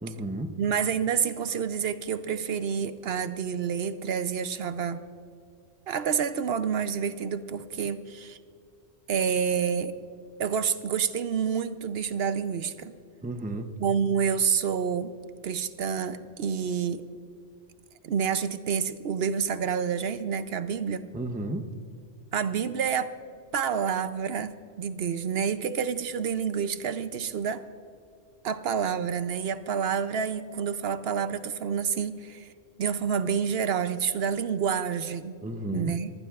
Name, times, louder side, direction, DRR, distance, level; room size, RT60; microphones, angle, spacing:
voice 1, 0.0-0.5 13.2-13.7 21.1-21.7 35.4-36.0, right 1 dB, 10° right, 7 dB, 0.5 m, -33 dB
voice 2, 0.6-5.0 5.9-8.4 9.1-10.0 10.4-12.9 13.8-15.1 15.4-17.0 18.0-21.1 22.3-23.1 23.5-27.6 28.4-32.5 32.8-35.3 35.7-36.1, right 7 dB, 60° right, 12 dB, 0.8 m, -28 dB
24.0 x 15.0 x 2.4 m, 2.3 s
omnidirectional pair, 1.3 m